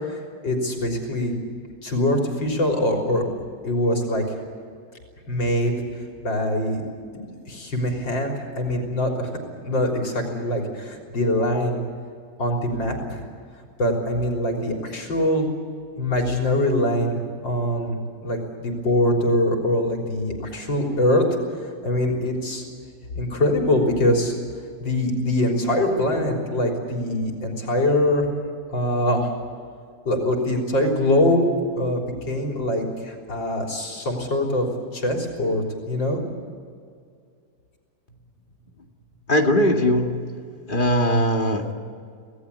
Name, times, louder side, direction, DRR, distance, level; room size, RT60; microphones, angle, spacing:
voice 1, 0.4-1.3 1.8-3.2 3.6-4.2 5.3-5.7 6.2-6.8 7.1-9.3 9.6-11.8 12.4-13.2 13.8-15.5 16.0-17.2 17.4-21.2 21.8-22.6 23.1-24.3 24.8-28.2 28.7-29.3 30.1-31.5 31.8-34.7 34.9-36.2, left 1 dB, 85° left, 1 dB, 4.4 m, -23 dB
voice 2, 39.3-40.1 40.7-41.7, equal, 25° left, 2 dB, 2.2 m, -20 dB
26.5 x 18.0 x 8.5 m, 2.3 s
omnidirectional pair, 2.0 m